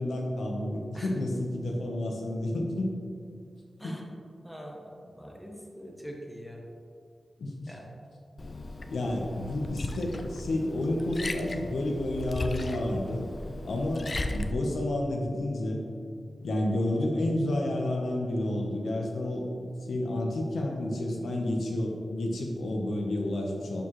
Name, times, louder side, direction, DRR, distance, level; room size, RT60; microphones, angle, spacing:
voice 1, 0.0-2.9 3.8-4.0 7.4-7.8 8.9-13.3 13.6-15.8 16.4-23.8, left 1 dB, 85° left, 0 dB, 1.1 m, -30 dB
voice 2, 4.4-6.6 7.7-8.0, equal, ahead, -1 dB, 0.9 m, -43 dB
Liquid, 8.4-14.5, left 2 dB, 35° left, 0.4 m, -37 dB
11.5 x 4.8 x 3.2 m, 2.2 s
wide cardioid pair, 160°, 0 cm